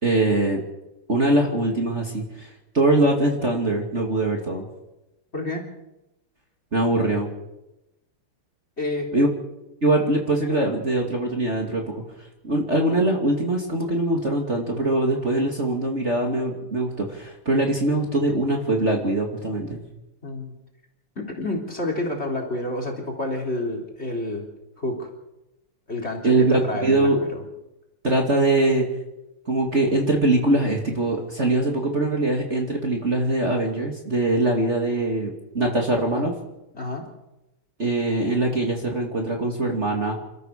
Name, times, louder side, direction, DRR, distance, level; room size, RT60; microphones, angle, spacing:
voice 1, 0.0-0.6 1.1-4.7 6.7-7.3 9.1-9.3 9.8-12.0 12.4-19.8 26.2-27.2 28.0-28.9 29.5-36.3 37.8-40.2, right 2 dB, 30° right, 1 dB, 2.6 m, -22 dB
voice 2, 5.3-5.6 8.8-9.1 20.2-20.5 21.2-24.4 24.8-25.1 25.9-27.4 36.7-37.0, left 2 dB, 30° left, 3 dB, 3.8 m, -29 dB
28.5 x 13.5 x 6.7 m, 0.95 s
omnidirectional pair, 2.4 m